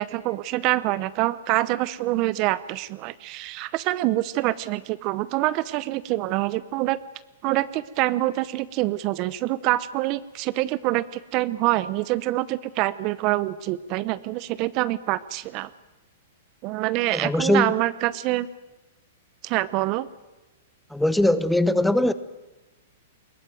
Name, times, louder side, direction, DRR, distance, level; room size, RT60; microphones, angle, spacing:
voice 1, 0.0-7.0 7.4-15.7 16.6-18.5 19.4-20.1, right 17 dB, 40° right, 17 dB, 0.8 m, -25 dB
voice 2, 17.1-17.7 20.9-22.1, left 1 dB, ahead, 14 dB, 1.0 m, -21 dB
21.5 x 18.5 x 9.3 m, 1.1 s
hypercardioid pair, 130°, 0 cm